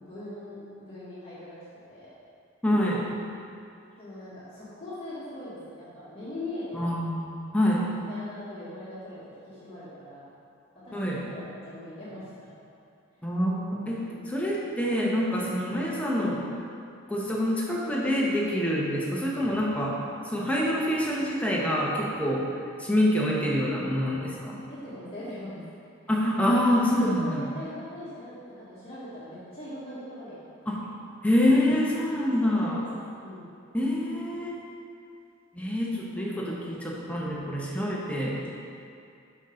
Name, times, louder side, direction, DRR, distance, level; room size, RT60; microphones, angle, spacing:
voice 1, 0.0-1.6 1.9-2.1 4.0-7.0 8.1-10.3 10.8-12.5 14.0-14.3 24.7-25.6 26.4-26.5 27.1-30.8 32.4-33.0 33.2-33.5 36.5-36.8, left 1 dB, 30° left, -12 dB, 1.8 m, -41 dB
voice 2, 2.6-3.0 6.7-7.9 10.9-11.2 13.2-16.5 17.1-22.5 22.8-24.6 26.1-27.4 30.7-30.8 31.2-32.8 33.7-34.6 35.5-38.5, equal, 5° left, -4 dB, 1.1 m, -26 dB
6.2 x 5.8 x 5.2 m, 2.4 s
head